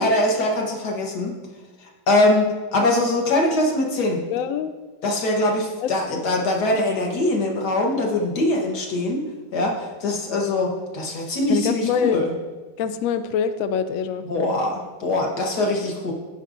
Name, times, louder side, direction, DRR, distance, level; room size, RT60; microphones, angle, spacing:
voice 1, 0.0-1.3 1.8-4.2 5.0-9.2 9.5-12.3 14.2-16.1, left 1 dB, 60° left, 0 dB, 1.8 m, -22 dB
voice 2, 4.3-4.7 5.8-6.2 11.5-12.2 12.8-14.2, left 7 dB, 85° left, 10 dB, 0.7 m, -24 dB
15.5 x 5.2 x 2.6 m, 1.3 s
omnidirectional pair, 2.0 m